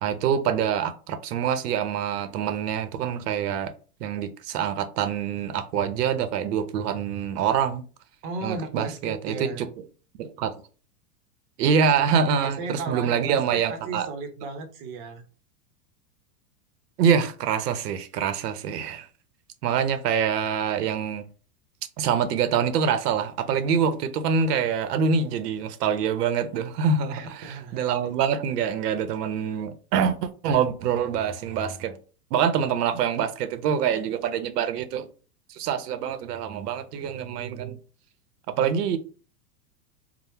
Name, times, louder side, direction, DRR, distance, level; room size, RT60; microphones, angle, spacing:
voice 1, 0.0-3.7 4.0-7.8 8.4-9.7 10.2-10.5 11.6-14.1 17.0-19.1 19.6-21.2 22.0-30.2 30.4-32.0 32.3-35.1 35.5-37.8 38.5-39.0, right 7 dB, 85° right, 0.6 m, -25 dB
voice 2, 8.2-9.7 12.2-15.2 27.1-27.8, right 3 dB, 35° right, 0.6 m, -35 dB
2.8 x 2.0 x 3.3 m
supercardioid pair, 145°, 46 cm